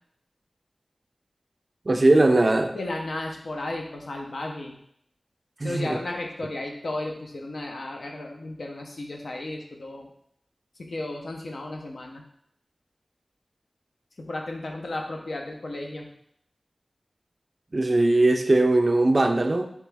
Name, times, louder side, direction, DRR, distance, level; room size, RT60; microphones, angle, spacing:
voice 1, 1.9-2.7 5.6-6.0 17.7-19.7, right 2 dB, 45° right, 6 dB, 0.3 m, -20 dB
voice 2, 2.7-4.8 5.6-10.1 10.8-12.2 14.2-16.1, left 2 dB, 80° left, 1 dB, 0.6 m, -34 dB
3.5 x 3.0 x 3.4 m, 0.69 s
wide cardioid pair, 80°, 0 cm